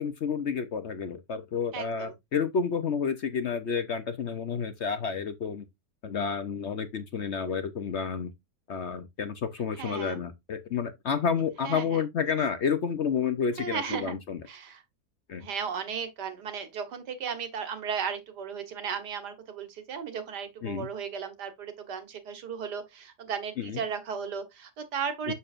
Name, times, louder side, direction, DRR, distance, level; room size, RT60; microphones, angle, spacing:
voice 1, 0.0-5.7 6.0-8.3 8.7-14.4 15.3-15.5 20.6-20.9 23.6-23.8 25.3-25.4, left 6 dB, 55° left, 0.8 m, -30 dB
voice 2, 1.7-2.1 9.8-10.2 11.6-12.0 12.4-12.5 13.6-14.2 14.5-14.8 15.4-25.3, right 7 dB, 85° right, 1.9 m, -35 dB
6.9 x 6.7 x 2.5 m
omnidirectional pair, 1.7 m